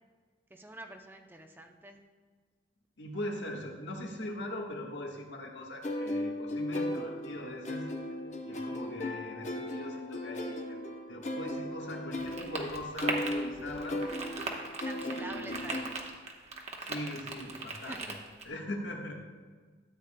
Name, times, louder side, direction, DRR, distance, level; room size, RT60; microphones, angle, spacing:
voice 1, 0.5-2.0 8.5-8.6 14.8-15.8 17.9-18.1, right 1 dB, 10° right, 4 dB, 0.5 m, -46 dB
voice 2, 3.0-7.9 8.4-14.0 15.0-15.9 16.8-18.2 18.4-19.2, left 1 dB, 90° left, 1 dB, 1.4 m, -41 dB
sound 1, 5.8-15.8, left 1 dB, 40° left, 0.8 m, -36 dB
sound 2, 12.2-18.4, right 3 dB, 35° right, 0.9 m, -39 dB
13.0 x 8.7 x 2.2 m, 1.5 s
head